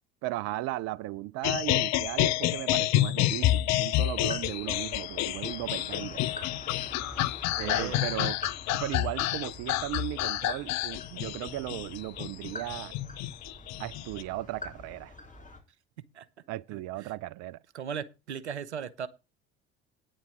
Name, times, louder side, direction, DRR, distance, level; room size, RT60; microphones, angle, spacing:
voice 1, 0.2-6.2 7.6-8.4 8.7-12.9 13.8-15.2 16.5-17.6, right 16 dB, 55° right, 0.5 m, -36 dB
sound 1, 1.4-14.2, left 15 dB, 55° left, 0.6 m, -29 dB
sound 2, 4.1-15.6, left 2 dB, 25° left, 4.1 m, -45 dB
voice 2, 7.6-8.3 16.1-16.3 16.7-17.1 17.7-19.1, right 8 dB, 90° right, 0.8 m, -38 dB
9.5 x 7.7 x 6.1 m
hypercardioid pair, 60°, 33 cm